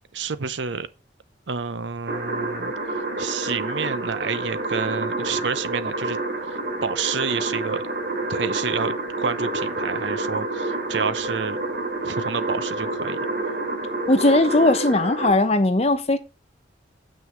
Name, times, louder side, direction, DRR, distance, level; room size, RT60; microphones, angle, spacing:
voice 1, 0.1-0.9 1.5-2.7 3.2-7.8 8.3-11.6 12.0-13.2, right 5 dB, 80° right, 0.7 m, -29 dB
sound 1, 2.1-15.3, right 2 dB, 55° right, 2.9 m, -28 dB
voice 2, 14.1-16.2, left 2 dB, 35° left, 0.9 m, -18 dB
7.7 x 6.1 x 6.3 m
head